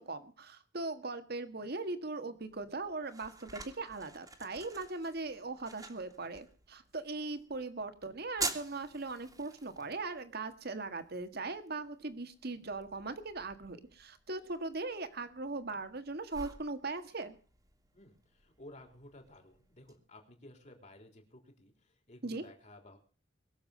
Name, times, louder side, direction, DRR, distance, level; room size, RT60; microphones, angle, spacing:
voice 1, 0.0-17.4 22.2-22.5, right 3 dB, 60° right, 10 dB, 1.7 m, -39 dB
sound 1, 2.4-20.0, right 3 dB, 20° right, 2.0 m, -48 dB
voice 2, 17.9-23.0, left 1 dB, 40° left, 4 dB, 3.8 m, -55 dB
22.0 x 7.4 x 6.7 m, 0.40 s
head